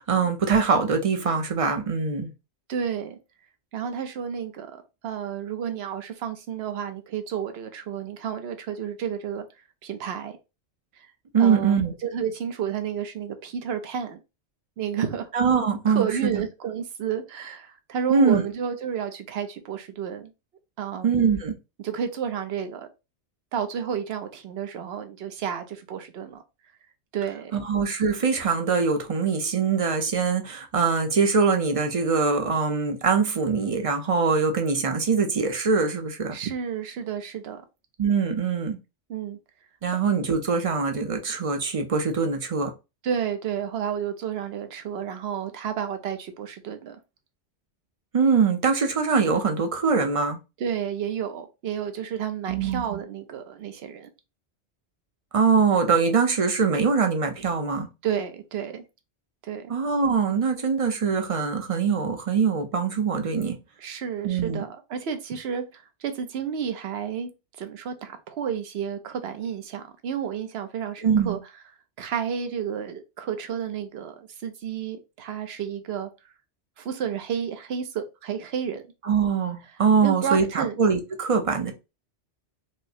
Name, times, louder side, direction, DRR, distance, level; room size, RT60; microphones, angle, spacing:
voice 1, 0.0-2.3 11.3-11.9 15.3-16.4 18.1-18.4 21.0-21.5 27.5-36.4 38.0-38.8 39.8-42.7 48.1-50.4 52.5-53.0 55.3-57.9 59.7-63.6 64.2-64.6 71.0-71.4 79.0-81.7, right 5 dB, 40° right, 0.6 m, -23 dB
voice 2, 2.7-3.2 3.7-4.7 5.0-9.5 9.8-10.4 11.0-11.1 11.4-14.2 14.8-15.3 15.9-20.3 20.8-21.1 21.8-22.9 23.5-26.4 27.1-27.6 36.3-37.6 39.1-39.4 43.0-47.0 50.6-54.1 58.0-58.8 59.4-59.7 63.8-67.3 67.6-71.4 72.0-76.1 76.8-78.8 80.0-80.8, right 8 dB, 65° right, 0.9 m, -31 dB
4.7 x 2.0 x 2.7 m
omnidirectional pair, 1.2 m